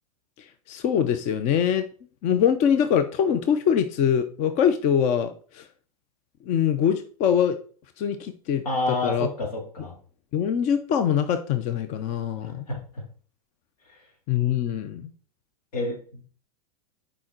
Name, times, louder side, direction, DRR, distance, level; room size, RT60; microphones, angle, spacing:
voice 1, 0.7-1.8 2.2-5.7 6.5-7.6 8.0-8.6 9.0-9.3 10.3-12.7 14.3-15.1, left 8 dB, 40° left, 9 dB, 0.6 m, -23 dB
voice 2, 8.6-9.9 12.7-13.0 13.9-14.0 15.7-16.2, left 2 dB, 90° left, 1 dB, 2.8 m, -29 dB
6.2 x 5.0 x 4.5 m, 0.43 s
supercardioid pair, 130°, 19 cm